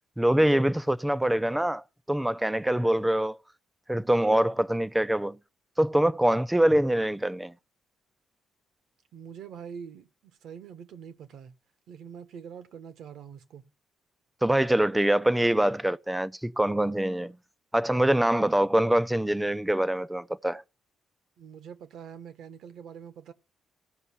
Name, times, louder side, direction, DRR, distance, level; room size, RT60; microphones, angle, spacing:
voice 1, 0.2-3.4 3.9-5.4 5.8-7.5 14.4-17.4 17.7-20.6, right 1 dB, 5° right, 0.5 m, -24 dB
voice 2, 9.1-10.1 10.4-11.5 11.9-13.7 21.4-23.3, right 7 dB, 75° right, 1.2 m, -44 dB
16.0 x 5.5 x 7.0 m
cardioid pair, 90°, 0 cm